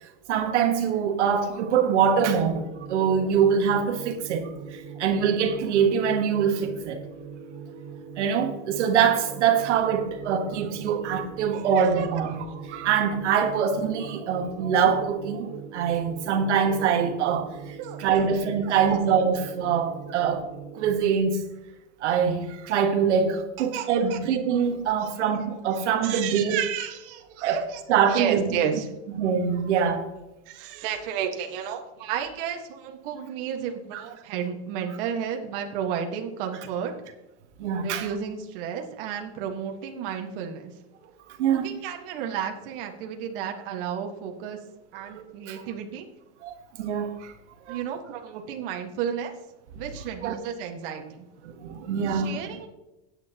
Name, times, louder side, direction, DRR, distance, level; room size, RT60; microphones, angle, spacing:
voice 1, 0.3-7.0 8.2-20.5 20.7-21.4 22.0-26.6 27.4-28.6 29.2-30.1 33.9-34.0 37.6-38.1 41.4-41.7 45.1-45.6 46.4-47.3 47.7-47.8 50.2-50.4 51.6-52.4, right 7 dB, 80° right, 1.5 m, -24 dB
sound 1, 2.0-21.0, right 6 dB, 25° right, 0.9 m, -41 dB
voice 2, 17.8-18.3 18.6-19.0 23.6-24.2 25.0-25.1 26.0-27.8 28.1-28.9 30.4-36.9 37.8-40.7 41.5-44.6 44.9-46.1 47.7-49.3 49.7-51.2 52.1-52.7, right 8 dB, 50° right, 1.7 m, -32 dB
16.0 x 9.1 x 3.0 m
supercardioid pair, 160°, 34 cm